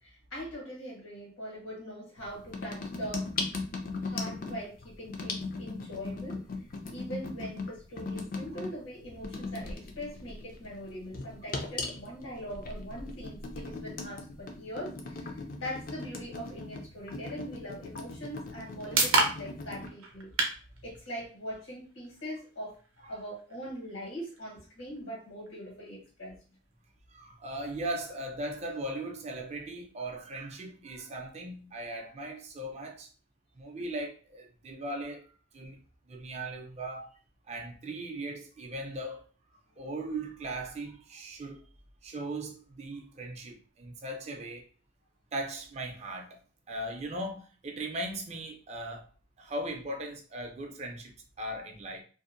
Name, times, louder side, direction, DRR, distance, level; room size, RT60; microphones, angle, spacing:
voice 1, 0.0-3.3 4.0-6.5 6.9-20.5 20.8-26.3, equal, 85° left, -3 dB, 1.4 m, -42 dB
sound 1, 2.2-19.9, left 3 dB, 45° left, 0.4 m, -39 dB
sound 2, 18.2-32.1, right 3 dB, 85° right, 0.6 m, -37 dB
voice 2, 27.1-33.1 33.6-35.8 36.1-37.1 37.5-39.2 39.8-41.6 42.0-44.7 45.3-46.4 46.7-49.1 49.4-52.0, right 1 dB, 35° right, 2 dB, 0.4 m, -38 dB
2.7 x 2.0 x 2.5 m, 0.38 s
head